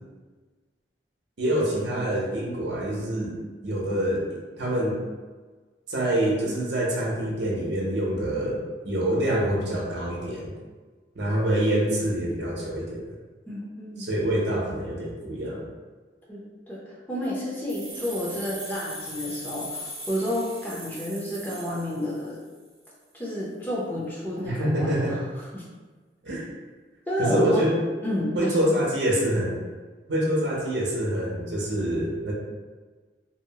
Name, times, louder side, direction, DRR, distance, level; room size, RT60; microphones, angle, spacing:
voice 1, 1.4-3.3 3.6-5.0 5.9-8.6 8.8-10.5 11.2-13.0 14.0-15.7 24.4-25.2 26.2-26.5 27.2-27.7 28.3-29.6 30.1-32.3, right 1 dB, 80° right, -4 dB, 0.7 m, -26 dB
voice 2, 13.5-14.1 16.3-22.4 23.1-25.6 26.3-26.5 27.1-27.6 28.0-28.7, left 1 dB, 10° left, -7 dB, 0.5 m, -31 dB
sound 1, 17.7-22.5, right 1 dB, 35° right, 0.6 m, -39 dB
2.6 x 2.0 x 2.8 m, 1.4 s
head